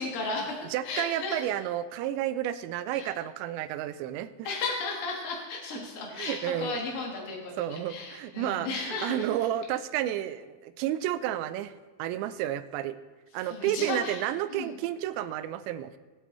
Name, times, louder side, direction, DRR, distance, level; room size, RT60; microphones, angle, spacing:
voice 1, 0.0-1.4 2.9-3.1 4.4-9.3 13.4-14.2 14.5-14.7, left 3 dB, 80° left, -1 dB, 1.2 m, -34 dB
voice 2, 0.7-4.5 6.1-6.8 7.6-11.7 12.0-13.0 13.3-16.0, right 12 dB, 85° right, 13 dB, 2.8 m, -31 dB
19.5 x 8.2 x 3.1 m, 1.3 s
omnidirectional pair, 5.1 m